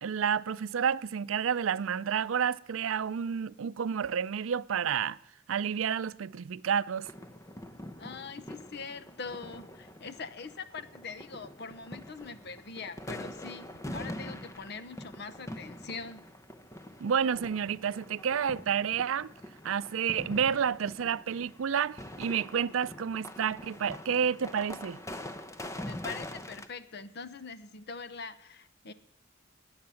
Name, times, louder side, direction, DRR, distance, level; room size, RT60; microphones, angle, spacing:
voice 1, 0.0-5.2 5.5-7.1 17.0-19.3 19.6-25.0, right 7 dB, 90° right, 0.4 m, -30 dB
sound 1, 7.0-26.7, left 1 dB, 15° left, 0.8 m, -44 dB
voice 2, 8.0-16.3 25.8-28.9, left 4 dB, 55° left, 0.9 m, -43 dB
19.0 x 8.8 x 7.0 m
head